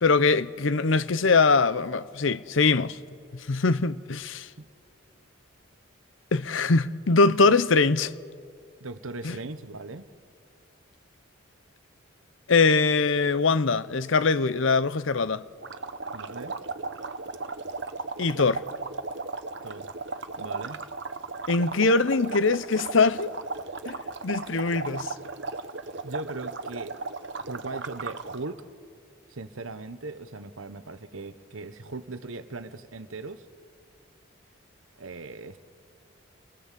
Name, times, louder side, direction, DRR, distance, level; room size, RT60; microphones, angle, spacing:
voice 1, 0.0-3.0 3.3-4.5 6.3-8.1 9.2-9.4 12.5-15.4 18.2-18.6 21.5-23.3 23.9-24.0 24.2-25.1, left 4 dB, 70° left, 0.7 m, -22 dB
voice 2, 8.8-10.1 16.1-16.6 19.6-19.9 20.4-20.8 26.0-27.0 27.5-28.6 29.3-33.5 35.0-35.6, right 3 dB, 80° right, 1.1 m, -39 dB
sound 1, 15.6-28.4, right 3 dB, 55° right, 0.9 m, -36 dB
28.0 x 19.0 x 7.5 m
head